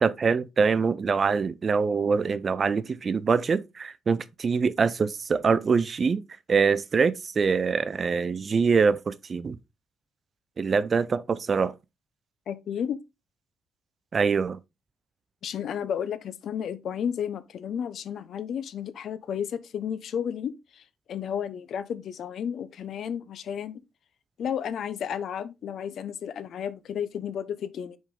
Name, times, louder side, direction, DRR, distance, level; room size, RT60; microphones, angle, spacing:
voice 1, 0.0-6.2 6.5-9.6 10.6-11.7 14.1-14.6, right 5 dB, 40° right, 0.5 m, -24 dB
voice 2, 12.5-13.0 15.4-20.8 21.1-23.8 24.4-28.0, left 8 dB, 65° left, 0.7 m, -32 dB
5.3 x 5.1 x 3.7 m
cardioid pair, 90°, 0 cm